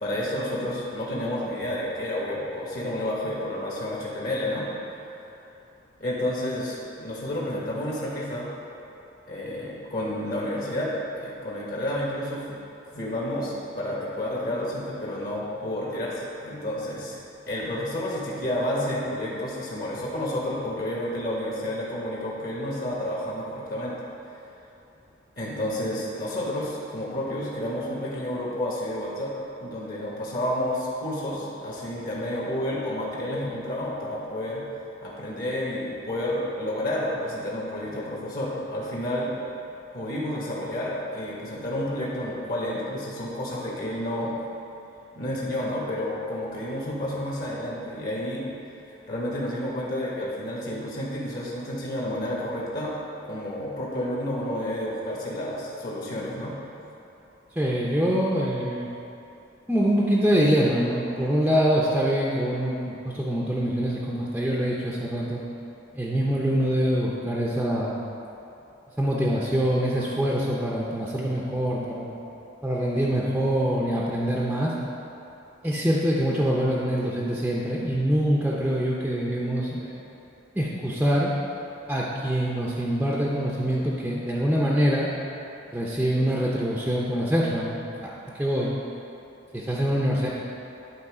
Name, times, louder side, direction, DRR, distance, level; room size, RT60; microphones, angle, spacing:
voice 1, 0.0-4.7 6.0-8.5 9.3-12.6 12.9-17.2 17.5-24.0 25.4-29.3 29.6-34.6 35.0-39.3 39.9-44.3 45.1-48.4 49.1-52.9 53.3-56.5, left 1 dB, 50° left, -5 dB, 1.4 m, -30 dB
voice 2, 57.6-58.9 59.7-65.4 65.9-67.9 69.0-72.2 72.6-74.7 75.6-80.0 80.6-81.3 81.9-85.1 85.7-88.7 89.5-90.3, equal, 5° right, -4 dB, 0.6 m, -24 dB
11.5 x 3.8 x 4.9 m, 2.9 s
head